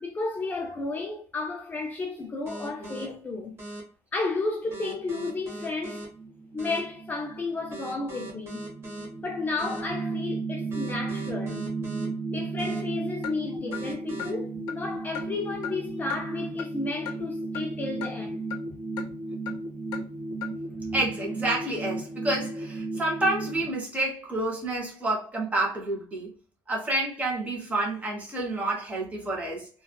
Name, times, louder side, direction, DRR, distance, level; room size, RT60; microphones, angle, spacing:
voice 1, 0.0-3.5 4.1-6.1 6.5-8.6 9.2-11.7 12.3-18.4 18.7-18.8, left 3 dB, 25° left, 0.4 m, -32 dB
sound 1, 2.5-3.0 3.6-3.8 4.7-6.1 6.6-6.8 7.7-9.1 9.6-9.8 10.7-12.1 12.6-12.8 13.7-14.3, right 2 dB, 35° right, 1.3 m, -40 dB
sound 2, 4.7-23.7, right 3 dB, 60° right, 1.5 m, -35 dB
Clock, 13.2-13.4 13.7-13.8 14.2-14.3 14.7-14.8 15.1-15.3 15.6-15.7 16.1-16.2 16.6-16.7 17.1-17.2 17.5-17.7 18.0-18.1 18.5-18.6 19.0-19.1 19.5-19.6 19.9-20.0 20.4-20.5, left 8 dB, 70° left, 0.5 m, -36 dB
voice 2, 20.9-26.3 26.7-29.7, right 2 dB, 20° right, 1.1 m, -29 dB
3.4 x 2.4 x 2.2 m
cardioid pair, 140°, 7 cm